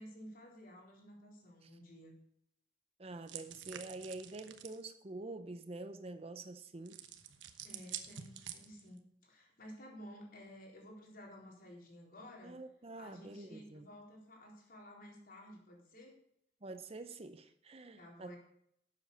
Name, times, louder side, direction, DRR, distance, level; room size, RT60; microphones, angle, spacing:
voice 1, 0.0-2.1 7.6-12.5 13.0-16.1 18.0-18.4, equal, 50° left, 3.9 m, -53 dB
voice 2, 3.0-7.0 12.4-13.9 16.6-18.3, right 2 dB, 35° right, 0.7 m, -47 dB
sound 1, 3.3-4.8 6.9-9.0, right 9 dB, 85° right, 1.1 m, -48 dB
12.0 x 7.8 x 6.5 m
head